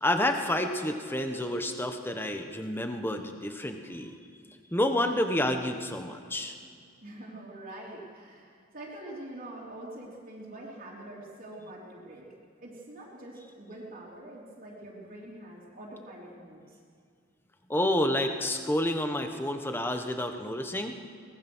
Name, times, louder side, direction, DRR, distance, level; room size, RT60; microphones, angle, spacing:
voice 1, 0.0-4.1 4.7-6.5 17.7-20.9, left 1 dB, 10° left, 5 dB, 1.2 m, -29 dB
voice 2, 7.0-12.3 12.6-16.8, right 1 dB, 40° right, -6 dB, 3.4 m, -45 dB
24.0 x 19.5 x 6.3 m, 2.2 s
head